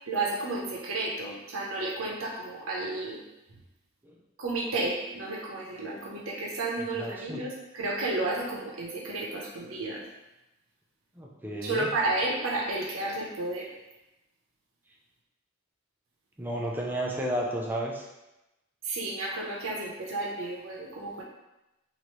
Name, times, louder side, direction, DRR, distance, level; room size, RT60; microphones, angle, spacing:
voice 1, 0.1-3.2 4.4-10.1 11.6-13.7 18.8-21.2, right 2 dB, 80° right, -3 dB, 0.7 m, -32 dB
voice 2, 7.0-7.4 11.2-11.9 16.4-18.0, right 1 dB, 10° right, -2 dB, 0.4 m, -32 dB
3.0 x 2.5 x 3.0 m, 0.97 s
head